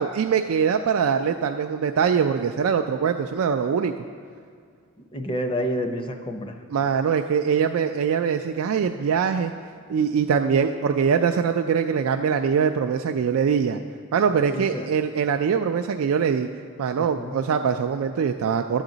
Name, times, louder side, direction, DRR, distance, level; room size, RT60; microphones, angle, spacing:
voice 1, 0.0-3.9 6.7-9.5 9.9-13.8 14.1-16.5 16.8-18.8, right 6 dB, 70° right, 5 dB, 0.3 m, -23 dB
voice 2, 5.1-6.5 14.5-14.9 17.0-17.3, equal, 25° left, 5 dB, 0.6 m, -29 dB
12.5 x 7.2 x 3.9 m, 2.2 s
head